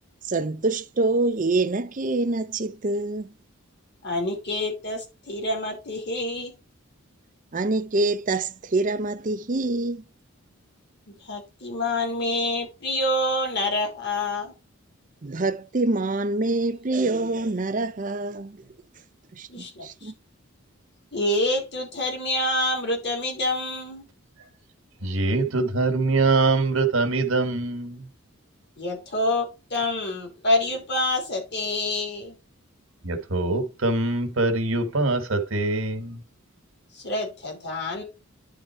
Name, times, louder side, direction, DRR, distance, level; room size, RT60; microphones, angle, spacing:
voice 1, 0.2-3.3 7.5-10.0 15.2-18.6 19.3-20.1, right 2 dB, 40° right, 0.6 m, -26 dB
voice 2, 4.0-6.5 11.1-14.5 19.5-20.1 21.1-24.0 28.8-32.4 36.9-38.0, left 1 dB, 55° left, 3.0 m, -27 dB
voice 3, 25.0-28.1 33.0-36.2, right 3 dB, 70° right, 1.5 m, -23 dB
10.5 x 3.7 x 4.4 m
head